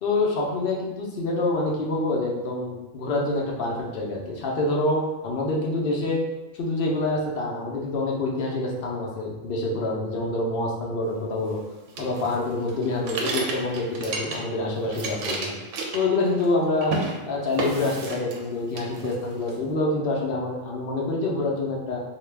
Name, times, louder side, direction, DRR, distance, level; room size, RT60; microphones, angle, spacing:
voice 1, 0.0-6.2 6.5-11.6 12.0-15.5 15.9-16.9 17.3-22.0, left 2 dB, 55° left, -2 dB, 0.7 m, -26 dB
sound 1, 12.0-14.6 14.8-16.5 16.8-17.1 17.6-18.5 18.8-19.5, right 3 dB, 70° right, 0.9 m, -31 dB
2.8 x 2.3 x 3.3 m, 1.1 s
omnidirectional pair, 1.4 m